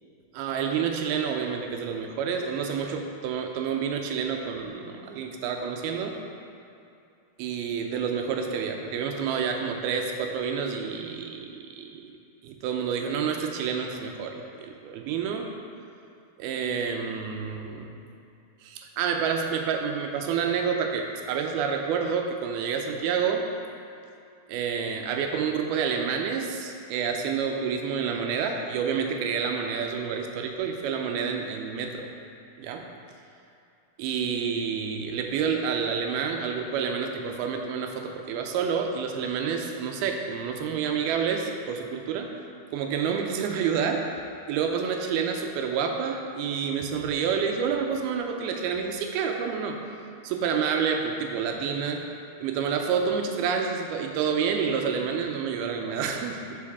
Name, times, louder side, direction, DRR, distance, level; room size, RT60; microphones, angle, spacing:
voice 1, 0.3-6.2 7.4-12.2 12.4-15.5 16.4-17.9 18.6-23.4 24.5-32.1 32.6-32.9 34.0-42.3 42.7-44.1 44.5-49.8 50.2-52.0 52.4-56.6, right 6 dB, 80° right, 3 dB, 2.4 m, -28 dB
13.0 x 5.4 x 3.5 m, 2.6 s
omnidirectional pair, 4.7 m